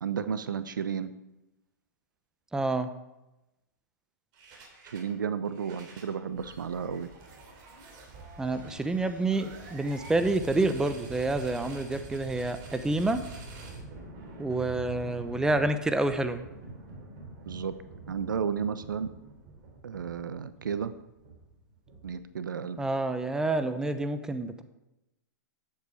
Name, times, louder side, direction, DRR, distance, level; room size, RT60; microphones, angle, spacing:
voice 1, 0.0-1.1 4.9-7.1 17.5-17.7 18.1-19.1 19.8-20.9 22.0-22.8, right 7 dB, 80° right, 13 dB, 0.8 m, -32 dB
voice 2, 2.5-2.9 8.4-13.2 14.4-16.4 22.8-24.6, right 2 dB, 5° right, 10 dB, 0.8 m, -28 dB
sound 1, 4.3-5.1 5.5-22.4, right 3 dB, 40° right, 3.3 m, -46 dB
12.5 x 8.1 x 4.9 m, 0.95 s
hypercardioid pair, 115°, 11 cm